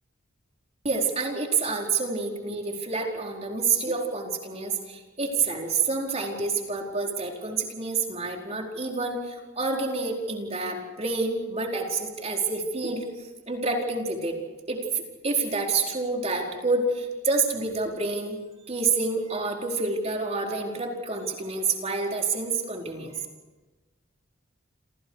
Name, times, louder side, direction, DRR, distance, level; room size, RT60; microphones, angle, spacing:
voice 1, 0.8-13.0 13.5-14.4 14.7-18.4 18.7-23.2, right 3 dB, 30° right, 1 dB, 4.5 m, -28 dB
29.5 x 27.0 x 4.9 m, 1.2 s
head